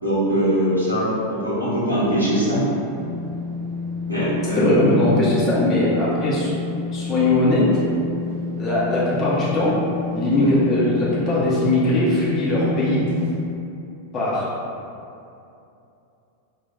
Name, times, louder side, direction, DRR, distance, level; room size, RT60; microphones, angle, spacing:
voice 1, 0.0-2.6 4.0-5.0 10.3-10.6, right 1 dB, 85° right, -9 dB, 0.9 m, -22 dB
sound 1, 2.8-13.4, left 4 dB, 55° right, 0.3 m, -30 dB
voice 2, 4.5-6.5 6.9-7.6 8.6-9.7 10.1-13.0 14.1-14.4, left 1 dB, 30° left, -8 dB, 0.7 m, -20 dB
4.0 x 2.2 x 2.2 m, 2.7 s
figure-of-eight pair, 90°, 0 cm